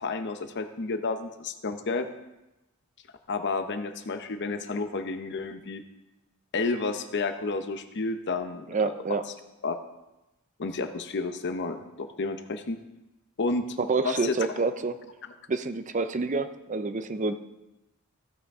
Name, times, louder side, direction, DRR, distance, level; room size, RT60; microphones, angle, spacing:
voice 1, 0.0-2.1 3.3-5.8 6.5-8.9 9.6-9.8 10.6-12.8 13.4-13.7 14.0-14.4, left 3 dB, 50° left, 8 dB, 0.7 m, -31 dB
voice 2, 8.7-9.2 13.8-15.0 15.5-17.3, right 3 dB, 35° right, 10 dB, 0.5 m, -28 dB
15.0 x 5.8 x 3.6 m, 0.98 s
head